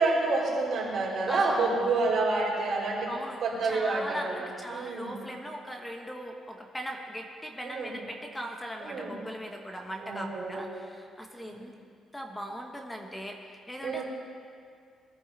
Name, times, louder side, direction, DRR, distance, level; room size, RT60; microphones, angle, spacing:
voice 1, 0.0-3.1 3.4-5.1 7.6-7.9 8.8-9.1 10.0-10.6 11.4-11.6 13.8-14.0, right 3 dB, 60° right, -5 dB, 4.5 m, -28 dB
voice 2, 1.3-1.6 3.1-11.7 12.1-13.4 13.7-14.0, equal, 10° left, 2 dB, 1.4 m, -39 dB
22.0 x 10.5 x 4.2 m, 2.2 s
cardioid pair, 90°, 0 cm